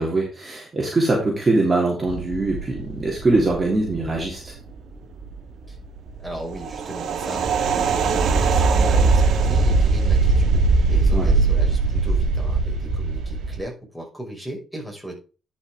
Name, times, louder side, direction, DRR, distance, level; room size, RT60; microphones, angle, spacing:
voice 1, 0.0-4.5 11.1-11.3, right 2 dB, 25° right, -2 dB, 3.2 m, -22 dB
sound 1, 2.1-4.7 5.0-5.4 5.7-13.6, right 4 dB, 65° right, 1.6 m, -20 dB
voice 2, 6.2-10.6 10.9-15.2, right 1 dB, ahead, -1 dB, 5.6 m, -37 dB
11.0 x 5.9 x 3.7 m, 0.33 s
cardioid pair, 90°, 0 cm